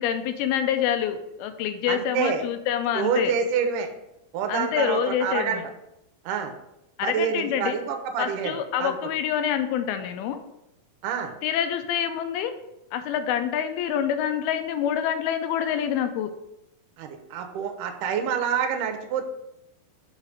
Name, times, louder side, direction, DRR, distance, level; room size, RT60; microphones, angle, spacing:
voice 1, 0.0-3.3 4.5-5.7 7.0-7.8 8.2-10.4 11.4-12.5 12.9-16.3, left 9 dB, 90° left, 9 dB, 2.5 m, -26 dB
voice 2, 1.9-2.4 2.9-3.9 4.3-5.6 6.3-6.5 7.0-9.0 11.0-11.3 17.0-19.3, right 7 dB, 75° right, 5 dB, 2.1 m, -27 dB
5.7 x 4.9 x 4.9 m, 0.85 s
omnidirectional pair, 4.3 m